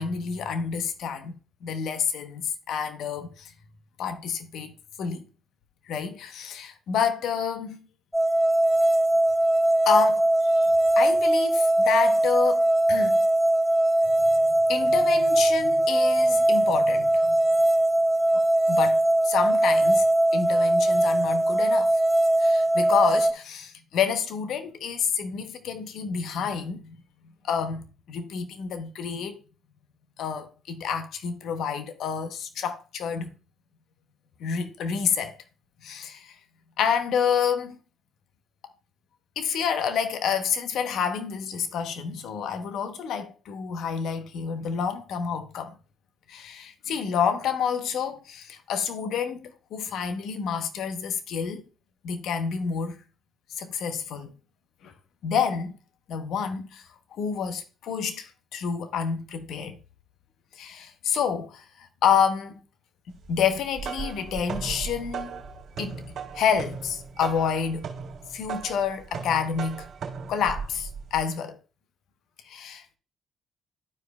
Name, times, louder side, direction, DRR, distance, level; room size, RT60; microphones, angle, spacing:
voice 1, 0.0-1.3 1.6-3.5 4.0-4.7 5.0-5.2 5.9-7.8 9.9-13.2 14.7-17.3 18.7-20.1 20.3-22.0 22.4-26.9 27.4-29.4 30.2-33.3 34.4-35.4 35.8-36.3 36.8-37.8 39.4-45.7 46.3-51.6 52.0-53.0 53.5-54.3 54.8-54.9 55.2-55.7 56.1-56.8 57.1-59.8 60.5-62.6 63.3-65.3 65.8-66.0 66.3-67.9 68.3-69.9 70.3-71.6 72.5-73.0, left 7 dB, 65° left, 0.9 m, -28 dB
sound 1, 8.1-23.3, right 1 dB, 5° left, 0.7 m, -21 dB
sound 2, 63.5-71.3, right 6 dB, 60° right, 2.0 m, -37 dB
13.0 x 4.8 x 2.3 m
hypercardioid pair, 55°, 0 cm